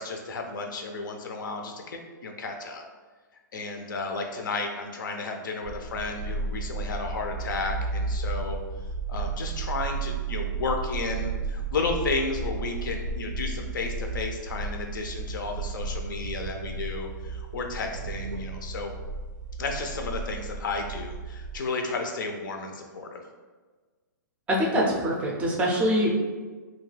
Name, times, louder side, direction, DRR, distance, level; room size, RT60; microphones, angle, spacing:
voice 1, 0.0-2.8 3.5-8.6 9.1-18.9 19.6-23.2, left 3 dB, 80° left, 4 dB, 0.5 m, -33 dB
sound 1, 5.6-21.6, right 3 dB, 85° right, 0.4 m, -33 dB
voice 2, 24.5-26.1, equal, 15° right, -2 dB, 0.4 m, -24 dB
2.3 x 2.2 x 3.2 m, 1.3 s
hypercardioid pair, 145°, 10 cm